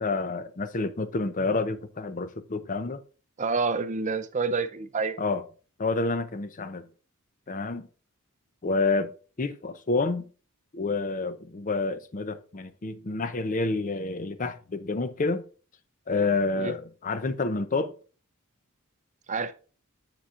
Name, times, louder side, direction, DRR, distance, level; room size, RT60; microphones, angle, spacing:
voice 1, 0.0-3.0 5.2-5.4 5.8-6.9 7.5-7.9 8.6-9.1 9.4-10.3 10.7-15.5 16.1-17.9, left 3 dB, 35° left, 0.6 m, -28 dB
voice 2, 3.4-5.2 16.6-16.7 19.3-19.5, right 4 dB, 35° right, 0.5 m, -28 dB
7.8 x 7.0 x 2.4 m
head